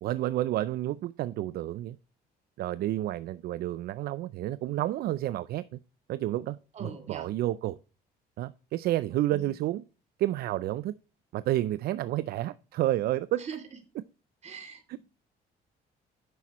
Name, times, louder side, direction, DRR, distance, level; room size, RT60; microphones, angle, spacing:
voice 1, 0.0-2.0 2.6-5.8 6.1-7.8 8.4-9.8 10.2-10.9 11.3-13.5 13.9-14.0 14.9-15.0, right 14 dB, 65° right, 0.4 m, -30 dB
voice 2, 6.8-7.3 13.5-13.6 14.4-15.0, right 5 dB, 40° right, 2.5 m, -41 dB
10.0 x 7.2 x 3.0 m
cardioid pair, 110°, 17 cm